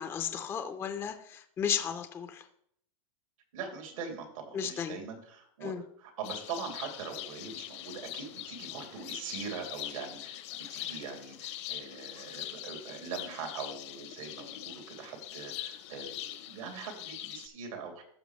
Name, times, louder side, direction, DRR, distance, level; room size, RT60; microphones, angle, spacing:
voice 1, 0.0-2.5 4.5-5.0 5.6-5.8, left 8 dB, 15° left, 8 dB, 0.4 m, -34 dB
voice 2, 3.5-5.7 6.0-18.0, right 5 dB, 85° right, 2 dB, 2.7 m, -42 dB
sound 1, 6.2-17.5, left 13 dB, 60° left, 0.8 m, -42 dB
14.5 x 5.7 x 3.1 m, 0.68 s
supercardioid pair, 155°, 17 cm